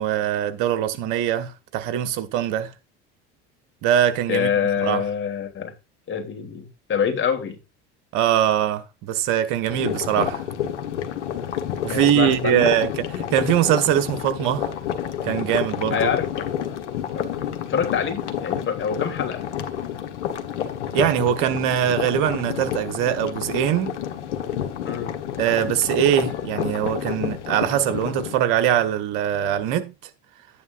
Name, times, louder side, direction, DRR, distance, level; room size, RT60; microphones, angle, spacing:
voice 1, 0.0-2.7 3.8-4.5 4.8-5.0 8.1-10.4 11.8-14.7 15.2-16.1 20.9-24.0 25.4-29.9, right 10 dB, 65° right, 1.5 m, -22 dB
voice 2, 4.3-5.7 6.1-7.6 11.9-12.8 15.9-16.7 17.1-17.3 17.7-19.4 24.8-25.1, left 7 dB, 35° left, 3.2 m, -26 dB
sound 1, 9.7-28.3, left 9 dB, 85° left, 1.4 m, -29 dB
12.0 x 9.6 x 2.6 m
hypercardioid pair, 85°, 34 cm